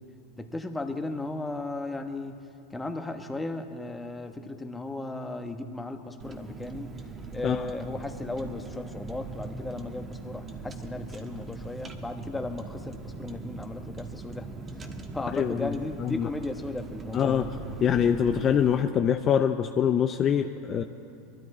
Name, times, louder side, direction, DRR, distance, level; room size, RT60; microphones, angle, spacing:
voice 1, 0.4-6.9 7.3-14.5 14.8-14.9 15.1-17.6, left 2 dB, 10° left, 6 dB, 1.1 m, -36 dB
Car, 6.2-18.8, right 3 dB, 25° right, 1.3 m, -40 dB
voice 2, 15.3-15.7 16.0-16.3 17.1-17.4 17.8-20.8, left 8 dB, 40° left, 6 dB, 0.5 m, -24 dB
22.5 x 13.0 x 4.3 m, 2.6 s
hypercardioid pair, 95°, 0 cm